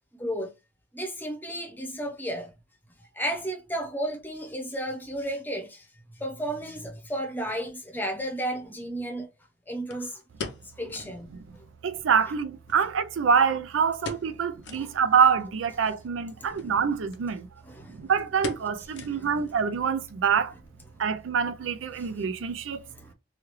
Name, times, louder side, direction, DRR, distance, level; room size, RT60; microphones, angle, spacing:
voice 1, 0.2-0.5 0.9-2.5 3.1-5.9 6.2-9.3 9.7-10.2 10.8-11.3 14.8-14.9 16.4-16.7 17.6-18.0 18.9-19.3 21.9-22.1 23.0-23.1, right 1 dB, 10° left, 0.8 m, -33 dB
sound 1, 7.8-7.9 9.9-11.2 11.6-11.7 11.9-12.0 12.7-13.5 14.0-14.4 14.6-14.9 15.4-15.5 16.5-16.7 17.1-17.2 17.5-17.9 18.4-19.5 19.8-19.9 20.5-20.8 21.1-21.2, left 4 dB, 65° left, 0.6 m, -39 dB
voice 2, 11.8-17.5 17.9-20.5 21.0-22.8, right 6 dB, 80° right, 0.4 m, -25 dB
3.1 x 2.3 x 3.1 m
head